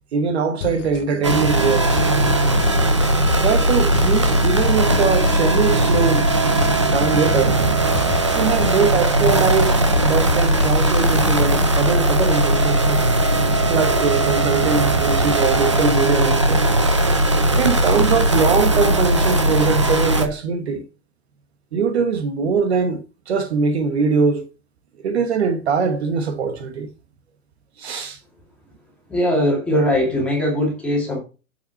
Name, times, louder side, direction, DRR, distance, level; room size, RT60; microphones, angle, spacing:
voice 1, 0.1-1.9 3.4-6.3 6.8-7.6 8.3-13.0 13.7-16.7 17.6-20.8 21.7-24.5 25.0-26.9 27.8-28.2, right 5 dB, 50° right, 1.4 m, -22 dB
sound 1, 0.6-11.3, left 8 dB, 55° left, 1.0 m, -32 dB
sound 2, 1.2-20.3, right 1 dB, 25° right, 0.4 m, -18 dB
voice 2, 29.1-31.2, left 1 dB, 5° left, 2.1 m, -20 dB
7.1 x 6.0 x 5.7 m
hypercardioid pair, 175°, 43 cm